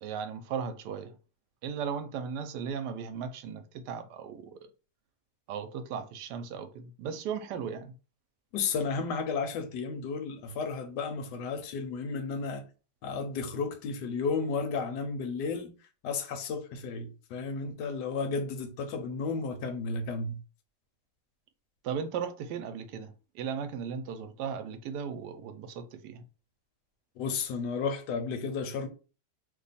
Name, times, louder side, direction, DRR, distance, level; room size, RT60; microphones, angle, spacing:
voice 1, 0.0-1.2 1.6-4.7 5.5-7.9 21.8-26.2, right 7 dB, 75° right, 1.1 m, -36 dB
voice 2, 8.5-12.6 13.0-15.7 16.0-20.4 27.2-28.9, left 4 dB, 80° left, 1.2 m, -33 dB
2.9 x 2.3 x 4.0 m
omnidirectional pair, 1.9 m